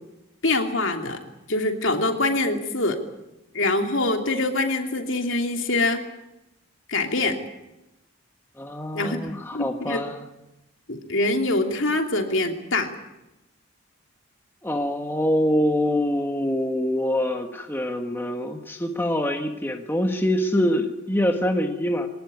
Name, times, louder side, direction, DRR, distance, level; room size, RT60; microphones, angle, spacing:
voice 1, 0.4-1.2 1.5-3.0 3.5-6.0 6.9-7.4 8.9-9.2 9.5-10.0 10.9-12.9, left 2 dB, 60° left, 4 dB, 3.0 m, -24 dB
voice 2, 8.6-10.2 14.6-22.1, left 1 dB, 10° left, 4 dB, 1.5 m, -25 dB
23.0 x 19.0 x 9.6 m, 0.94 s
head